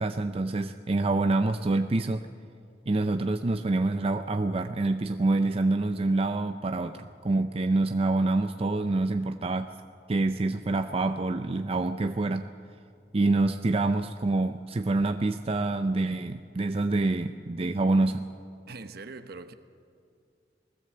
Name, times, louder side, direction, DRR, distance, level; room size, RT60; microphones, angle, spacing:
voice 1, 0.0-2.3 2.9-9.7 10.1-12.5 13.1-18.3, right 2 dB, 35° right, 0.5 m, -26 dB
voice 2, 18.7-19.5, right 3 dB, 60° right, 1.0 m, -42 dB
20.5 x 17.0 x 7.7 m
head